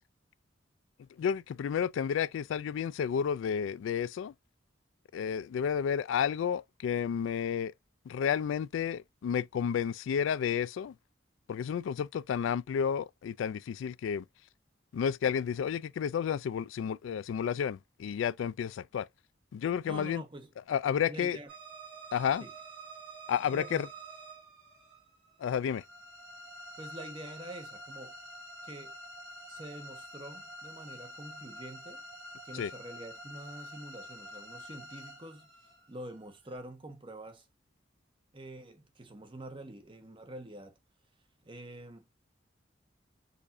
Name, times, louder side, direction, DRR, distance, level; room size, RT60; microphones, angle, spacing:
voice 1, 1.2-4.3 5.1-7.7 8.1-10.9 11.5-14.2 14.9-19.1 19.5-20.2 20.6-21.4 22.1-22.5 23.3-23.9 25.4-25.8 32.5-32.7, left 8 dB, 85° left, 0.3 m, -31 dB
voice 2, 19.8-20.5 21.1-21.5 22.4-22.5 23.5-23.8 26.8-28.2 28.6-28.9 29.5-32.0 32.4-35.5 35.9-37.5 38.3-40.8 41.4-42.1, right 1 dB, 25° right, 1.0 m, -46 dB
sound 1, 21.5-36.6, right 1 dB, 90° right, 3.0 m, -48 dB
6.6 x 2.5 x 2.6 m
head